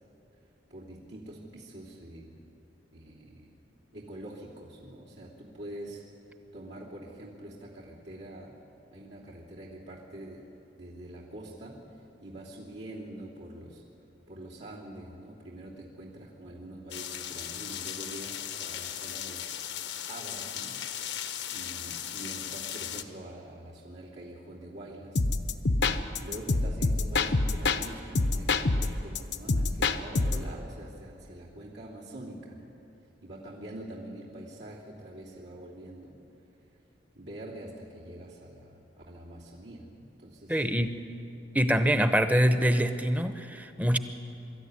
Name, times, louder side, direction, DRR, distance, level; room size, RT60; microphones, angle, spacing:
voice 1, 0.7-2.4 2.9-3.5 3.9-6.0 6.5-8.6 8.9-10.4 10.8-11.8 12.2-13.8 14.3-19.5 20.1-20.8 21.5-25.2 26.1-32.7 33.2-36.2 37.1-40.6, right 1 dB, 75° right, -5 dB, 3.1 m, -45 dB
sound 1, 16.9-23.0, left 10 dB, 90° left, 1.2 m, -37 dB
sound 2, 25.2-27.9 28.2-30.5, left 3 dB, 70° left, 0.9 m, -26 dB
voice 2, 40.5-41.0 41.5-44.0, equal, 10° right, 9 dB, 0.9 m, -24 dB
24.5 x 13.5 x 9.8 m, 2.8 s
head